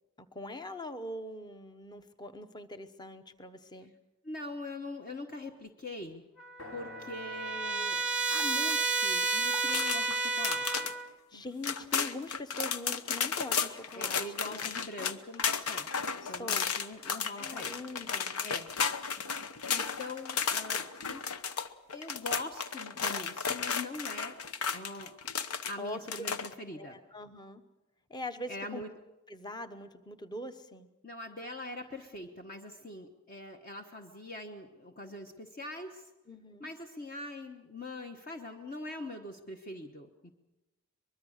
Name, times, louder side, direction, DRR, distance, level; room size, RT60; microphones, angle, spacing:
voice 1, 0.2-3.9 11.3-14.8 16.2-16.7 17.4-18.4 25.8-26.3 26.7-27.6 28.1-28.8 29.3-30.9 36.3-36.7, left 1 dB, 20° left, 9 dB, 1.0 m, -42 dB
voice 2, 4.2-6.2 6.7-10.9 14.0-15.9 16.3-17.7 18.4-18.7 19.6-21.3 21.9-24.4 24.7-25.1 25.7-27.0 28.5-28.9 31.0-36.1 36.6-40.3, left 2 dB, 40° left, 4 dB, 1.1 m, -43 dB
Trumpet, 6.4-11.1, right 3 dB, 5° right, 0.9 m, -31 dB
sound 1, 6.6-10.5, left 1 dB, 65° left, 3.6 m, -53 dB
sound 2, 8.3-8.8 9.5-10.9 11.3-11.4 11.6-25.7 26.1-26.5, left 6 dB, 85° left, 1.0 m, -33 dB
24.0 x 21.5 x 6.5 m, 1.0 s
head